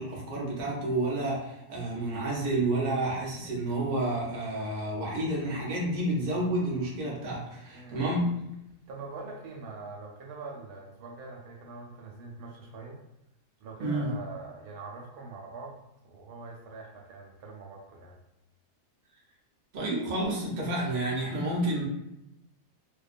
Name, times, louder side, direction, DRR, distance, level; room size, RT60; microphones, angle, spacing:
voice 1, 0.0-8.3 13.8-14.1 19.7-21.8, right 1 dB, 50° right, -4 dB, 0.5 m, -30 dB
voice 2, 7.7-8.3 8.9-13.0 13.6-15.8 16.0-18.2, right 3 dB, 75° right, 0 dB, 1.0 m, -43 dB
2.5 x 2.2 x 2.4 m, 0.84 s
omnidirectional pair, 1.7 m